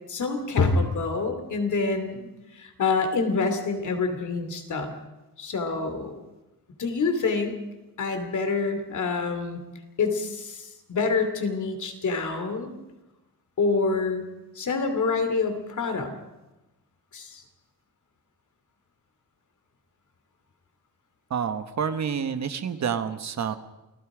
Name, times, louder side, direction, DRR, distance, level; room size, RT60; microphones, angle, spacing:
voice 1, 0.1-4.9 5.4-6.1 6.8-7.6 8.0-9.6 10.0-12.7 13.6-14.2 14.6-16.1 17.1-17.4, left 4 dB, 55° left, 7 dB, 2.9 m, -26 dB
voice 2, 21.3-23.6, right 7 dB, 50° right, 9 dB, 1.2 m, -28 dB
28.5 x 19.0 x 5.0 m, 1.0 s
wide cardioid pair, 170°, 35 cm